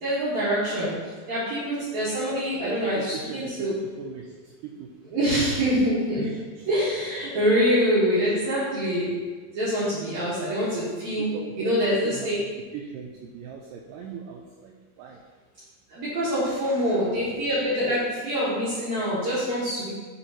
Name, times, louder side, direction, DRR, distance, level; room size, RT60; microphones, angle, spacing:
voice 1, 0.0-0.9 1.3-3.7 5.1-6.2 6.7-9.1 9.5-11.3 11.6-12.4 16.0-19.9, equal, 55° right, -10 dB, 2.6 m, -25 dB
voice 2, 2.6-4.9 6.2-6.7 11.3-11.8 12.0-12.3 12.7-15.2 16.6-17.1, right 6 dB, 85° right, 0 dB, 1.9 m, -39 dB
13.5 x 4.5 x 3.0 m, 1.4 s
omnidirectional pair, 4.5 m